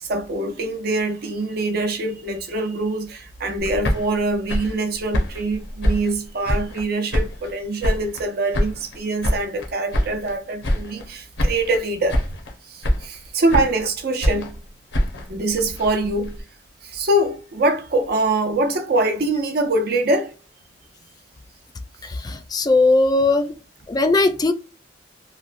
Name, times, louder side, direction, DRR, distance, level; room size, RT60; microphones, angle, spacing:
voice 1, 0.0-12.2 12.6-14.6 15.3-16.4 16.8-20.3, right 2 dB, 60° right, 0.6 m, -24 dB
sound 1, 3.6-6.8 7.1-8.3 8.5-10.3 10.6-11.1 11.4-11.8 12.1-12.5 12.8-13.9 14.2-16.4, equal, 85° left, 0.8 m, -25 dB
voice 2, 22.2-23.5 23.9-24.5, left 2 dB, 20° left, 0.3 m, -18 dB
3.0 x 2.2 x 2.5 m
head